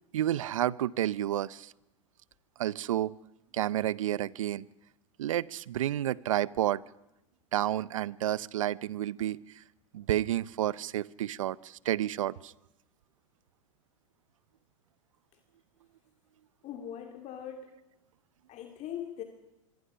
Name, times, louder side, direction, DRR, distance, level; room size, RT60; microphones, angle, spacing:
voice 1, 0.1-1.7 2.6-3.1 3.5-4.6 5.2-6.8 7.5-9.4 9.9-12.5, right 12 dB, 75° right, 22 dB, 0.7 m, -30 dB
voice 2, 16.6-17.7 18.5-19.2, left 9 dB, 40° left, 4 dB, 2.6 m, -40 dB
25.5 x 23.5 x 5.7 m, 0.93 s
hypercardioid pair, 90°, 17 cm